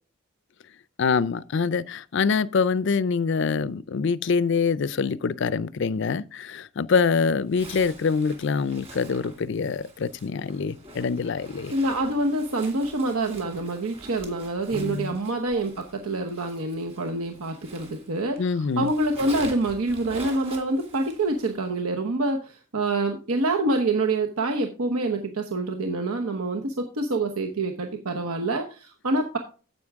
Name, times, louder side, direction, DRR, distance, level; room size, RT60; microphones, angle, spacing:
voice 1, 1.0-11.7 14.7-15.2 18.4-18.9, left 5 dB, 55° left, 0.4 m, -25 dB
Zipper (clothing), 7.5-18.4 18.7-21.6, right 2 dB, 25° right, 2.2 m, -45 dB
voice 2, 11.7-29.4, right 2 dB, 85° right, 1.0 m, -26 dB
9.7 x 7.7 x 3.5 m
head